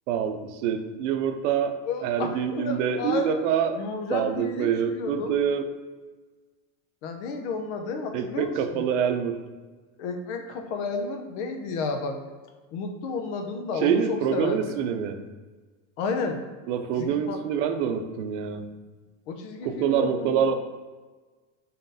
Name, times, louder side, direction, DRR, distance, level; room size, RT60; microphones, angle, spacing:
voice 1, 0.1-1.7 2.0-3.8 4.1-5.7 8.1-9.4 13.8-15.2 16.7-18.6 19.6-20.5, right 8 dB, 75° right, 7 dB, 0.6 m, -26 dB
voice 2, 1.9-3.3 3.8-4.7 5.0-5.4 7.0-8.8 10.0-12.2 12.7-14.8 16.0-16.4 17.0-17.4 19.3-20.4, left 4 dB, 70° left, 5 dB, 0.7 m, -31 dB
3.9 x 3.7 x 2.7 m, 1.3 s
supercardioid pair, 135°, 37 cm